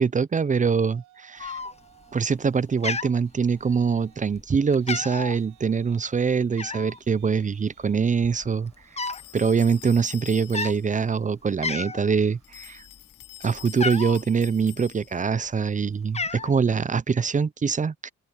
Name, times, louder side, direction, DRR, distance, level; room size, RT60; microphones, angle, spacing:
voice 1, 0.0-1.6 2.1-8.7 9.3-12.8 13.4-18.1, right 6 dB, 25° right, 0.6 m, -24 dB
Yell, 0.7-2.4 2.7-13.2, right 14 dB, 85° right, 6.4 m, -61 dB
Cat, 1.4-2.0 2.4-2.6 2.8-3.9 4.3-4.5 4.7-5.4 6.6-7.0 7.8-7.9 8.1-9.3 9.6-9.8 10.4-10.8 11.3-11.4 11.6-12.1 12.5-14.2 15.0-15.6 15.9-16.5, left 4 dB, 20° left, 0.9 m, -31 dB
sound 1, 9.0-11.0 12.4-15.3, left 15 dB, 85° left, 0.8 m, -46 dB
open air
cardioid pair, 90°, 30 cm